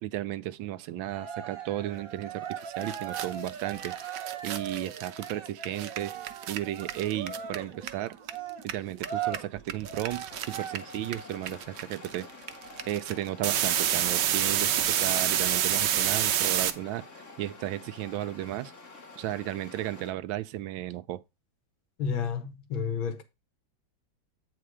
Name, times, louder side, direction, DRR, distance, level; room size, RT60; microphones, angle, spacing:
voice 1, 0.0-4.0 4.4-6.1 6.5-8.2 8.6-12.3 12.9-18.7 19.2-21.2, right 14 dB, 85° right, 1.4 m, -34 dB
Cheering, 1.0-11.1, right 9 dB, 50° right, 1.4 m, -39 dB
sound 1, 2.5-2.6 2.8-8.3 8.6-16.7, right 10 dB, 70° right, 1.3 m, -28 dB
sound 2, 10.3-20.1, left 3 dB, 40° left, 2.1 m, -48 dB
voice 2, 22.0-23.2, left 6 dB, 85° left, 2.0 m, -31 dB
8.6 x 4.3 x 4.7 m
omnidirectional pair, 2.1 m